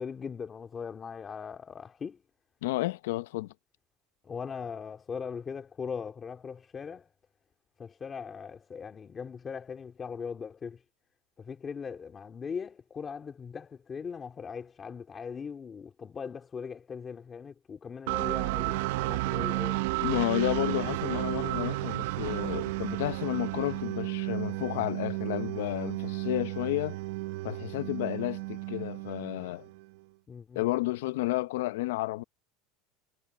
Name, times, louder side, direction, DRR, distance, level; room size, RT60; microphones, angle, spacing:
voice 1, 0.0-2.2 4.2-7.0 7.8-10.8 11.4-19.9 30.3-30.6, left 6 dB, 15° left, 2.4 m, -40 dB
voice 2, 2.6-3.5 20.0-27.0 27.4-29.7 30.5-32.2, left 18 dB, 90° left, 0.7 m, -31 dB
sound 1, 18.1-29.8, right 20 dB, 70° right, 0.5 m, -32 dB
supercardioid pair, 175°, 0 cm